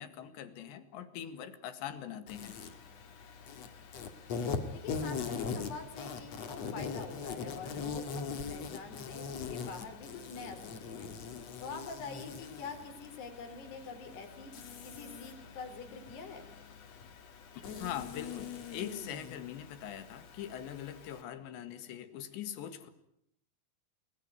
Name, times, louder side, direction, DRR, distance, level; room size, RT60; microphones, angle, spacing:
voice 1, 0.0-2.6 17.5-22.9, left 10 dB, 85° left, 11 dB, 4.1 m, -42 dB
Insect, 2.3-21.2, left 5 dB, 45° left, 2.6 m, -42 dB
voice 2, 4.7-11.1 11.6-14.5 14.8-16.5, left 5 dB, 70° left, 7 dB, 5.9 m, -45 dB
29.0 x 21.0 x 9.4 m, 0.73 s
omnidirectional pair, 5.0 m